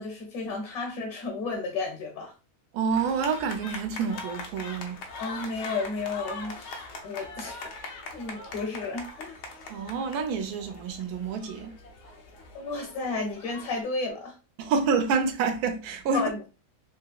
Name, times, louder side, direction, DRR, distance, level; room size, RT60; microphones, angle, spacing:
voice 1, 0.0-2.3 5.2-7.7 8.1-9.4 12.5-14.4 16.1-16.5, left 3 dB, 70° left, 1.2 m, -33 dB
voice 2, 2.7-5.0 9.7-11.7 14.6-16.2, right 5 dB, 75° right, 1.1 m, -28 dB
sound 1, 2.9-13.8, left 3 dB, 85° left, 1.2 m, -42 dB
3.4 x 2.8 x 2.2 m
omnidirectional pair, 1.7 m